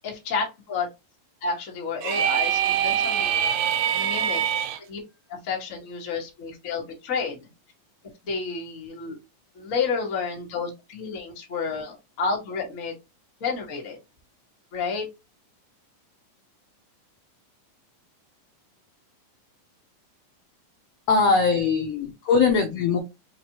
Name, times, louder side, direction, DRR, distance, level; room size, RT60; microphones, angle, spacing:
voice 1, 0.0-0.9 1.4-3.7 3.9-4.6 4.9-5.0 5.3-7.5 8.2-9.2 9.5-13.0 13.4-14.0 14.7-15.1, left 5 dB, 45° left, -1 dB, 1.1 m, -30 dB
sound 1, 2.0-4.8, right 9 dB, 85° right, 2.3 m, -24 dB
voice 2, 21.1-23.0, left 4 dB, 75° left, 2 dB, 1.5 m, -21 dB
5.0 x 3.1 x 2.9 m, 0.24 s
omnidirectional pair, 3.8 m